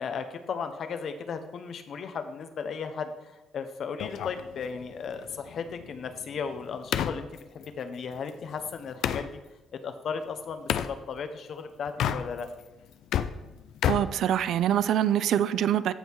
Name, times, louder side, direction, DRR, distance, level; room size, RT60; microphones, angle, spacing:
voice 1, 0.0-9.4 9.7-12.5, left 6 dB, 60° left, 8 dB, 1.0 m, -35 dB
sound 1, 4.0-9.3 10.7-10.9 11.9-12.6 12.9-14.9, left 9 dB, 80° left, 0.5 m, -32 dB
voice 2, 13.9-15.9, right 10 dB, 75° right, 15 dB, 0.4 m, -24 dB
14.0 x 5.5 x 4.7 m, 1.0 s
cardioid pair, 90°, 0 cm